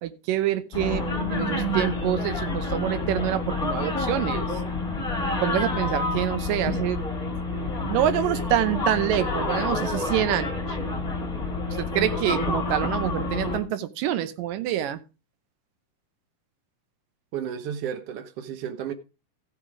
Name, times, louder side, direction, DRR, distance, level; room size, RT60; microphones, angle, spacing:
voice 1, 0.0-1.1 1.3-4.5 5.4-7.1 7.9-10.8 11.7-15.0, right 12 dB, 85° right, 2.5 m, -26 dB
sound 1, 0.7-13.6, left 2 dB, 15° left, 1.7 m, -28 dB
voice 2, 17.3-18.9, right 9 dB, 60° right, 1.7 m, -32 dB
15.0 x 5.6 x 4.9 m
omnidirectional pair, 3.8 m